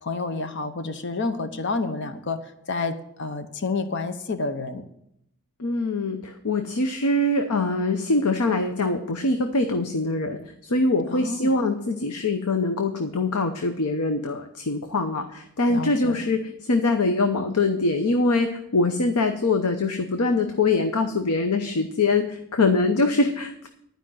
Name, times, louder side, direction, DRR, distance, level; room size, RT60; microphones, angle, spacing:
voice 1, 0.0-2.4 2.7-4.8 11.1-11.5 15.7-16.2, left 3 dB, 55° left, 9 dB, 0.8 m, -29 dB
voice 2, 5.6-23.7, left 3 dB, 90° left, 6 dB, 0.8 m, -23 dB
12.0 x 5.2 x 7.7 m, 0.77 s
head